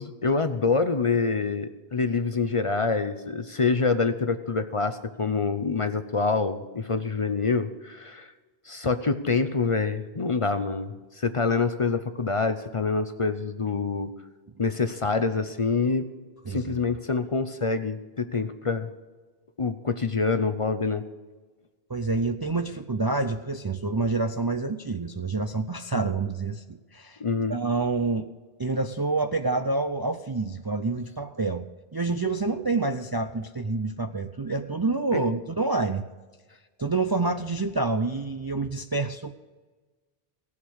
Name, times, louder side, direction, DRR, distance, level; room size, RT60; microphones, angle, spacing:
voice 1, 0.0-8.3 8.7-14.1 14.6-16.1 16.5-18.9 19.6-21.0 27.2-27.6 35.1-35.2, left 4 dB, 35° left, 10 dB, 0.6 m, -26 dB
voice 2, 16.5-16.8 21.9-27.2 27.5-28.3 28.6-36.0 36.8-39.3, right 3 dB, 30° right, 7 dB, 0.4 m, -27 dB
17.0 x 7.3 x 6.4 m, 1.3 s
omnidirectional pair, 1.0 m